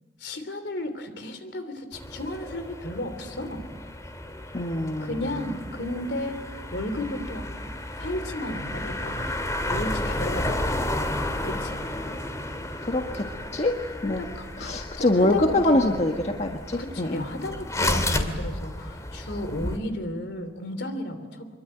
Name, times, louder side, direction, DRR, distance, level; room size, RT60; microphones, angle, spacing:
voice 1, 0.2-3.6 5.0-6.4 6.7-7.5 8.0-9.4 9.7-10.9 11.4-11.8 14.0-16.0 16.8-21.5, left 1 dB, 70° left, 9 dB, 3.2 m, -33 dB
sound 1, 1.9-19.8, left 1 dB, 20° left, 2.2 m, -32 dB
voice 2, 4.5-5.3 12.1-12.2 12.8-13.3 13.5-13.7 14.0-14.2 14.6-17.3, left 1 dB, 40° left, 3 dB, 1.6 m, -24 dB
25.0 x 23.0 x 9.1 m, 1.4 s
head